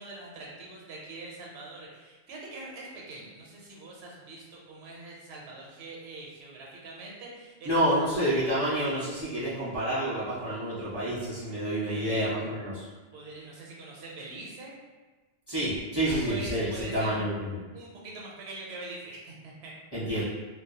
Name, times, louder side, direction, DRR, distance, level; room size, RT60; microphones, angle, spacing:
voice 1, 0.0-7.7 11.9-12.3 13.1-14.8 16.1-17.2 17.7-19.7, right 2 dB, 80° right, -3 dB, 0.9 m, -43 dB
voice 2, 7.6-12.9 15.5-17.6 19.9-20.2, right 1 dB, 25° left, -10 dB, 0.6 m, -28 dB
2.2 x 2.1 x 2.7 m, 1.2 s
omnidirectional pair, 1.1 m